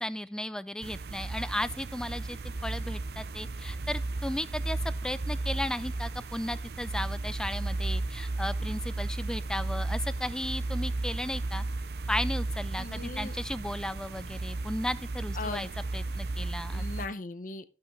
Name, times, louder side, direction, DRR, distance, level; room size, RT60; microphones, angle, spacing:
voice 1, 0.0-11.6 12.1-16.8, left 1 dB, 5° left, 0.3 m, -35 dB
sound 1, 0.8-17.1, right 2 dB, 60° right, 0.5 m, -34 dB
voice 2, 12.8-13.4 15.4-15.7 16.7-17.7, left 3 dB, 45° left, 0.7 m, -38 dB
14.0 x 5.8 x 3.1 m
head